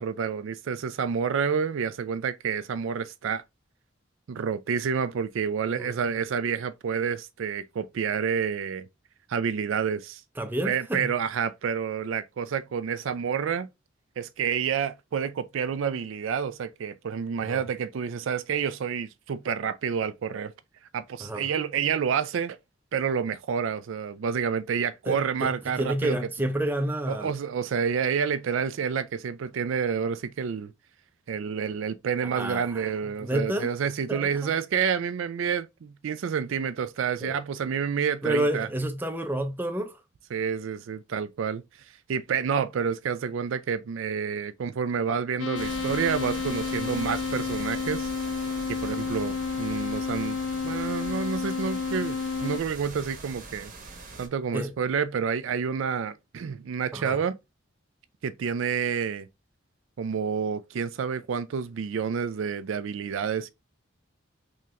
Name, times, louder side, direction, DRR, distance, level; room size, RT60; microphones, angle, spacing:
voice 1, 0.0-3.4 4.3-8.9 9.3-10.2 10.6-13.7 14.2-20.5 20.9-22.6 22.9-26.2 27.1-30.7 31.3-38.7 40.3-41.6 42.1-48.1 48.7-50.4 50.6-53.7 54.2-57.4 58.2-59.3 60.0-63.5, right 6 dB, 75° right, 0.4 m, -29 dB
voice 2, 5.8-6.1 10.4-11.1 17.5-17.6 21.2-21.4 25.1-27.3 32.2-32.8 33.2-33.7 34.1-34.3 37.2-37.4 38.2-40.0 54.5-54.7 56.9-57.2, right 1 dB, 10° right, 0.5 m, -29 dB
sound 1, 45.4-52.6, left 5 dB, 70° left, 0.4 m, -31 dB
sound 2, 45.5-54.3, right 3 dB, 45° right, 0.9 m, -42 dB
3.7 x 2.8 x 3.1 m
head